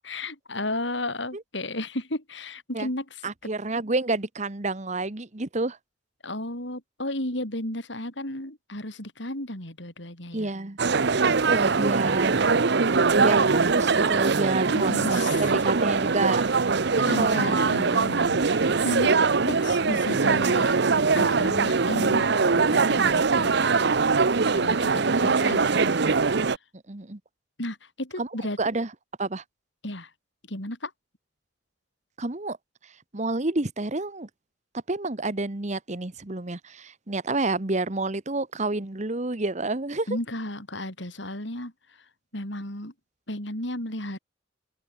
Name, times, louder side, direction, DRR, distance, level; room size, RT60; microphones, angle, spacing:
voice 1, 0.0-3.2 6.2-10.5 14.7-15.8 17.1-20.7 21.1-23.7 24.5-25.9 27.6-28.6 29.8-30.1 30.5-30.9 40.1-41.7 42.3-42.9 43.3-44.2, left 1 dB, 65° left, 6.8 m, -33 dB
voice 2, 3.2-5.8 10.3-10.8 11.5-12.4 13.1-15.2 15.6-16.4 17.2-17.6 18.6-18.8 24.9-25.7 26.9-27.2 28.2-28.3 28.6-28.9 29.2-29.4 32.2-32.6 33.1-34.3 34.9-40.1, right 2 dB, 35° right, 1.2 m, -29 dB
sound 1, 10.8-26.6, right 4 dB, 60° right, 0.7 m, -22 dB
head